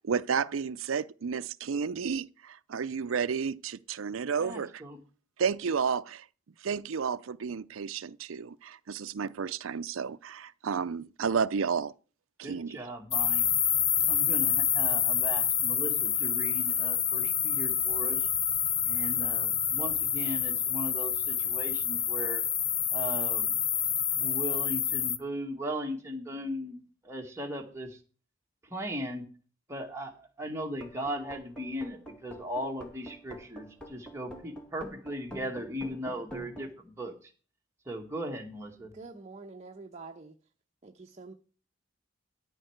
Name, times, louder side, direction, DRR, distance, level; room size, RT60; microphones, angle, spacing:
voice 1, 0.0-4.7 5.4-6.2 6.6-11.9 12.4-12.8, right 6 dB, 85° right, 0.5 m, -31 dB
voice 2, 4.4-5.0 12.4-13.5 14.0-18.3 18.8-22.4 22.9-23.6 24.2-28.0 28.6-29.3 29.7-37.3 37.9-38.9, equal, 15° right, 1.9 m, -38 dB
sound 1, 13.1-25.2, left 8 dB, 35° left, 0.8 m, -28 dB
sound 2, 30.7-36.7, equal, 5° left, 2.2 m, -46 dB
voice 3, 38.9-40.4 40.8-41.3, right 3 dB, 35° right, 1.0 m, -46 dB
13.5 x 4.7 x 8.0 m
head